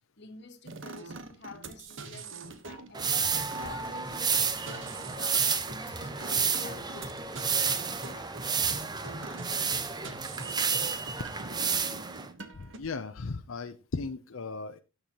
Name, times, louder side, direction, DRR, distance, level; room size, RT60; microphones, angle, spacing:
voice 1, 0.2-3.3 3.6-4.3 4.6-8.3, left 3 dB, 55° left, 1.5 m, -49 dB
sound 1, 0.6-12.8, right 3 dB, 65° right, 1.3 m, -44 dB
sound 2, 2.9-12.3, right 6 dB, 20° right, 0.8 m, -31 dB
sound 3, 3.0-11.7, equal, ahead, 0.4 m, -47 dB
voice 2, 12.6-14.8, left 4 dB, 85° left, 0.7 m, -36 dB
17.0 x 6.8 x 3.0 m
head